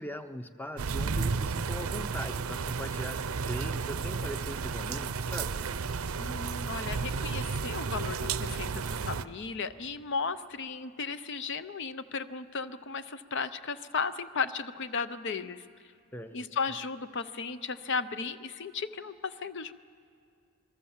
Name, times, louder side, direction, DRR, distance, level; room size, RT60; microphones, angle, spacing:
voice 1, 0.0-5.6 16.1-16.5, equal, 10° left, 10 dB, 0.7 m, -41 dB
sound 1, 0.8-9.2, right 5 dB, 70° right, 0.6 m, -33 dB
voice 2, 6.2-15.6 16.3-19.7, left 5 dB, 55° left, 12 dB, 0.6 m, -35 dB
27.0 x 21.0 x 7.3 m, 2.2 s
head